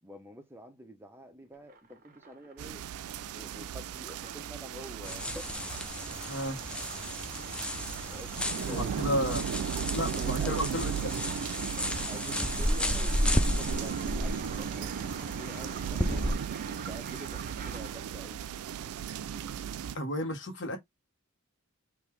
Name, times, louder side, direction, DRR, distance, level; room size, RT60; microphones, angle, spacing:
voice 1, 0.0-2.8 3.3-5.5 8.1-8.9 9.9-11.2 12.1-18.9, right 1 dB, 10° right, 0.7 m, -48 dB
sound 1, 1.5-18.2, right 4 dB, 40° right, 0.8 m, -49 dB
sound 2, 2.6-20.0, right 8 dB, 80° right, 0.3 m, -36 dB
sound 3, 5.0-16.3, left 1 dB, 5° left, 0.3 m, -33 dB
voice 2, 6.3-6.6 8.7-9.4 9.9-11.1 19.9-20.8, equal, 55° left, 1.3 m, -32 dB
3.8 x 2.7 x 3.2 m
head